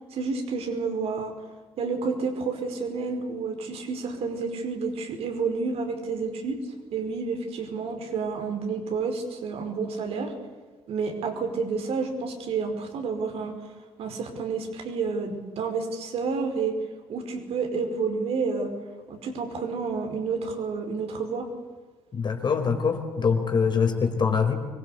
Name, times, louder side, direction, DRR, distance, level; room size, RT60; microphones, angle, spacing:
voice 1, 0.1-1.3 1.8-6.6 6.9-10.3 10.9-13.5 14.0-16.8 17.1-18.7 19.1-21.5, right 4 dB, 50° right, 5 dB, 5.1 m, -30 dB
voice 2, 22.1-24.5, left 5 dB, 35° left, 5 dB, 4.6 m, -24 dB
25.5 x 22.5 x 8.4 m, 1.4 s
figure-of-eight pair, 50°, 13 cm